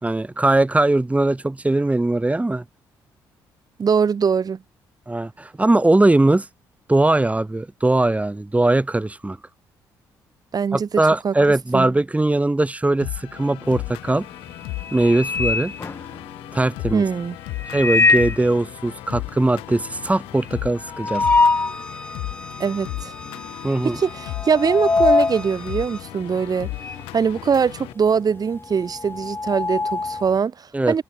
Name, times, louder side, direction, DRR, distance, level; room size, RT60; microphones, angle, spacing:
voice 1, 0.0-2.6 5.1-6.5 6.9-9.4 10.7-14.3 14.9-15.7 16.5-17.0 17.7-21.2 23.6-24.0 30.7-30.9, right 2 dB, 15° right, 4.0 m, -20 dB
voice 2, 3.8-4.6 10.5-10.9 11.2-11.3 11.7-11.9 16.9-17.4 22.6-23.1 23.8-26.7 27.1-31.0, right 6 dB, 45° right, 4.1 m, -22 dB
sound 1, 13.0-27.9, left 21 dB, 85° left, 4.5 m, -35 dB
sound 2, 13.7-14.1 14.5-16.6 17.5-18.5 18.9-19.0 19.2-19.3 19.7-21.8 22.3-22.4 23.2-23.5 23.8-27.1 27.4-30.3, left 3 dB, 25° left, 1.5 m, -23 dB
Bowed string instrument, 21.1-26.0, left 1 dB, 10° left, 6.9 m, -40 dB
supercardioid pair, 60°, 9 cm